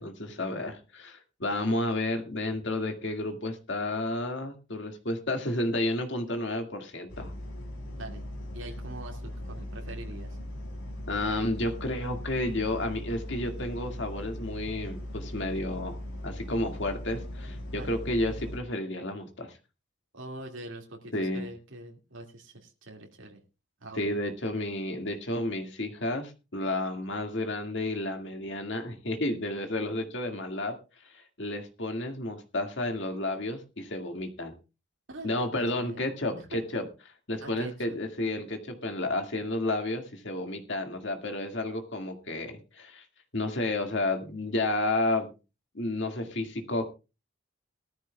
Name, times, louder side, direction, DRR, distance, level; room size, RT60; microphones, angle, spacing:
voice 1, 0.0-7.3 11.1-16.0 16.2-19.6 21.1-21.5 23.9-30.8 31.1-34.5 35.2-36.9 37.3-43.0 43.3-45.3 45.7-46.8, left 1 dB, 60° left, 5 dB, 2.0 m, -31 dB
sound 1, 7.1-18.6, left 1 dB, 85° left, 3.3 m, -39 dB
voice 2, 7.9-8.2 8.5-10.4 17.8-18.0 20.1-23.4 23.8-24.2 35.1-36.0 36.5-36.6 37.4-38.0, right 1 dB, 70° right, 1 dB, 2.1 m, -44 dB
19.0 x 13.5 x 2.3 m, 0.29 s
head